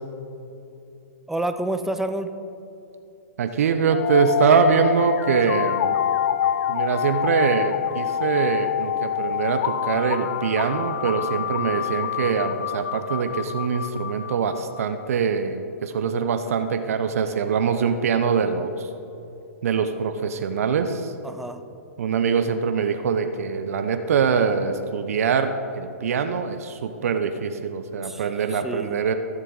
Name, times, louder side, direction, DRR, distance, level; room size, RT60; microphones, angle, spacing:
voice 1, 1.3-2.3 21.2-21.6 28.0-29.0, right 1 dB, 5° right, 8 dB, 0.5 m, -29 dB
voice 2, 3.4-5.9 6.7-18.9 19.6-21.1 22.0-29.2, right 6 dB, 65° right, 8 dB, 0.7 m, -23 dB
sound 1, 3.9-14.8, left 10 dB, 55° left, 0.6 m, -26 dB
15.5 x 7.4 x 4.0 m, 2.8 s
hypercardioid pair, 125°, 8 cm